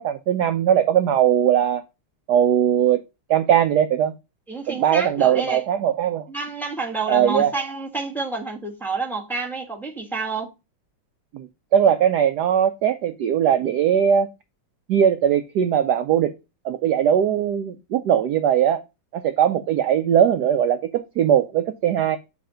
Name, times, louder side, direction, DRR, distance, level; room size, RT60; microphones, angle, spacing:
voice 1, 0.0-1.8 2.3-3.0 3.3-4.1 4.7-6.3 7.1-7.5 11.3-11.5 11.7-14.3 14.9-16.3 16.6-18.8 19.1-22.2, right 9 dB, 70° right, 1.0 m, -20 dB
voice 2, 4.5-5.6 6.3-10.5, right 3 dB, ahead, 1.1 m, -29 dB
7.9 x 3.5 x 4.9 m
omnidirectional pair, 2.2 m